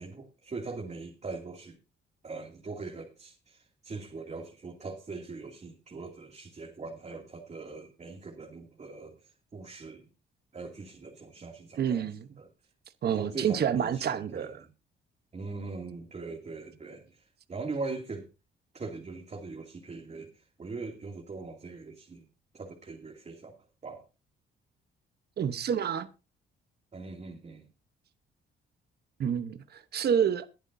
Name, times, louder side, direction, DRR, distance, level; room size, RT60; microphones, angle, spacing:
voice 1, 0.0-1.8 2.2-10.1 10.5-12.1 12.4-12.5 13.1-14.7 15.3-18.3 18.7-22.2 22.5-23.5 23.8-24.0 26.9-27.6, right 3 dB, 35° right, 2.6 m, -41 dB
voice 2, 11.8-12.3 13.0-14.6 25.4-26.1 29.2-30.5, right 8 dB, 55° right, 1.0 m, -28 dB
21.5 x 8.1 x 2.7 m
cardioid pair, 90°, 20 cm